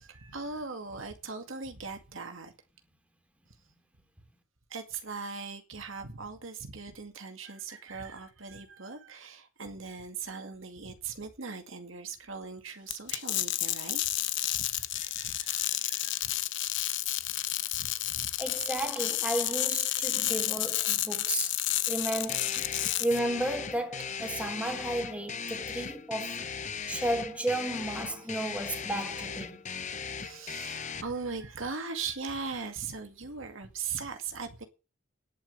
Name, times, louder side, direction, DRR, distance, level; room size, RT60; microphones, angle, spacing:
voice 1, 0.0-2.5 4.7-14.0 14.5-16.4 17.7-18.3 19.7-20.5 26.9-27.1 28.9-29.1 30.2-34.6, right 5 dB, 70° right, 2.2 m, -40 dB
sound 1, 12.9-23.2, left 14 dB, 65° left, 1.0 m, -31 dB
voice 2, 18.4-21.6 21.9-22.5 23.0-26.4 26.9-29.6, right 1 dB, 5° right, 3.0 m, -33 dB
sound 2, 22.3-31.0, left 6 dB, 35° left, 0.9 m, -38 dB
10.5 x 8.7 x 8.0 m
head